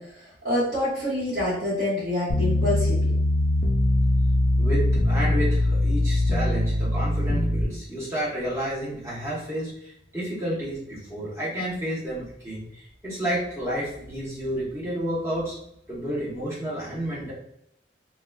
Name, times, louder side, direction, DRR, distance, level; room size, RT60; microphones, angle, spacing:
voice 1, 0.0-3.1, left 1 dB, 50° right, -12 dB, 1.3 m, -27 dB
sound 1, 2.3-7.6, left 1 dB, 35° left, 0.3 m, -22 dB
voice 2, 4.6-15.6 15.9-17.3, equal, 15° right, -7 dB, 0.8 m, -30 dB
3.8 x 2.2 x 2.3 m, 0.73 s
head